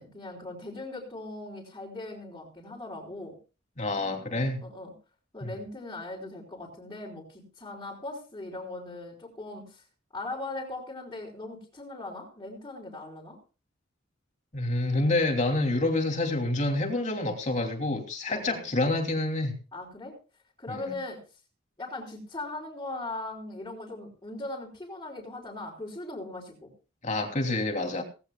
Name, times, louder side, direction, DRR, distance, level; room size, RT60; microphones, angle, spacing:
voice 1, 0.0-3.4 4.6-4.9 5.3-9.8 10.1-13.4 18.3-18.6 19.7-20.2 20.6-21.2 21.8-26.7 27.8-28.0, left 2 dB, 20° left, -7 dB, 4.3 m, -39 dB
voice 2, 3.8-4.6 5.4-5.5 14.5-19.5 20.7-20.9 27.0-28.0, left 2 dB, 35° left, 3 dB, 2.9 m, -28 dB
19.0 x 16.0 x 2.3 m, 0.33 s
head